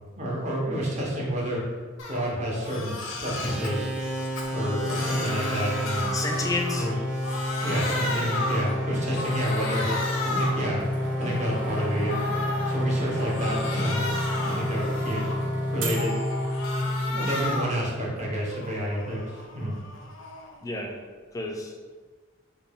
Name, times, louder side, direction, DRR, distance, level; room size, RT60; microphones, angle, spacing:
voice 1, 0.2-1.6 2.0-3.9 4.5-6.1 6.7-7.0 7.6-10.8 11.2-12.2 12.6-14.1 14.4-15.3 15.7-16.2 16.9-19.7, equal, 35° right, -4 dB, 0.8 m, -29 dB
Crying sobbing, 2.0-2.2 2.5-3.7 4.2-7.0 7.2-8.8 9.1-10.7 11.1-12.7 13.1-15.5 15.9-17.8 18.2-20.6, left 2 dB, 85° left, 0.6 m, -34 dB
sound 1, 3.3-17.9, left 1 dB, 5° right, 0.7 m, -30 dB
voice 2, 6.1-6.9 20.6-21.0 21.3-21.9, left 2 dB, 15° left, 2 dB, 0.3 m, -30 dB
sound 2, 10.5-17.0, right 1 dB, 65° right, 0.5 m, -37 dB
4.1 x 2.2 x 3.4 m, 1.4 s
head